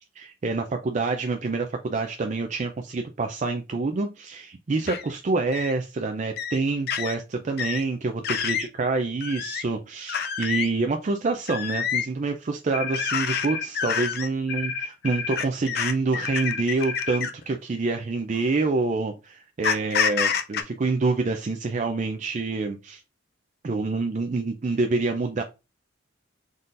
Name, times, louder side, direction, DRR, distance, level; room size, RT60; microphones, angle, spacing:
voice 1, 0.2-23.0 23.6-25.4, right 3 dB, 40° right, 5 dB, 0.4 m, -27 dB
sound 1, 4.9-5.0 5.5-5.7 6.4-6.6 6.9-7.1 7.6-7.8 8.2-8.7 9.2-9.6 10.1-10.7 11.5-12.1 12.9-13.5 13.7-14.3 15.3-17.4 18.3-18.5 19.6-20.6, left 7 dB, 55° left, 0.5 m, -27 dB
sound 2, 12.7-13.7 14.5-15.5 16.2-17.2, left 5 dB, 85° left, 0.7 m, -31 dB
4.0 x 3.8 x 2.5 m, 0.27 s
head